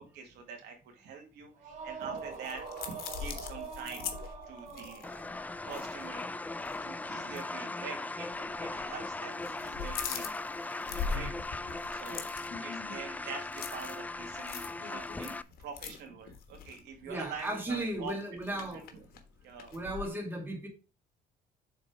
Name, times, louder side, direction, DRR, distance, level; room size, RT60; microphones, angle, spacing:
voice 1, 0.0-4.1 4.5-5.0 5.6-6.3 6.5-10.3 11.0-11.3 11.9-12.3 12.6-18.1 18.5-18.8 19.4-19.7, right 5 dB, 80° right, 2.3 m, -45 dB
sound 1, 1.6-5.5, right 5 dB, 50° right, 1.9 m, -43 dB
sound 2, 1.8-6.3 6.6-6.8 7.3-7.5 8.3-8.9 9.2-20.1, left 6 dB, 65° left, 1.3 m, -42 dB
sound 3, 5.0-15.4, left 2 dB, 10° left, 0.3 m, -39 dB
voice 2, 10.9-11.3 17.0-18.9 19.7-20.7, right 1 dB, 10° right, 2.2 m, -36 dB
6.6 x 4.2 x 4.8 m
cardioid pair, 110°, 17 cm